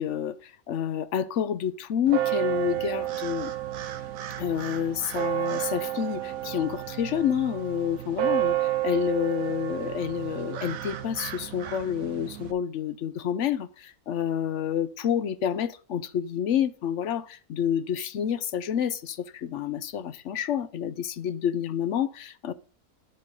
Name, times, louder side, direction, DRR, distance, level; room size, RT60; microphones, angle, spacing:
voice 1, 0.0-3.5 4.4-8.5 8.8-22.5, left 9 dB, 65° left, 0.9 m, -29 dB
sound 1, 2.1-12.5, right 14 dB, 70° right, 1.2 m, -31 dB
9.1 x 8.5 x 3.7 m
omnidirectional pair, 1.6 m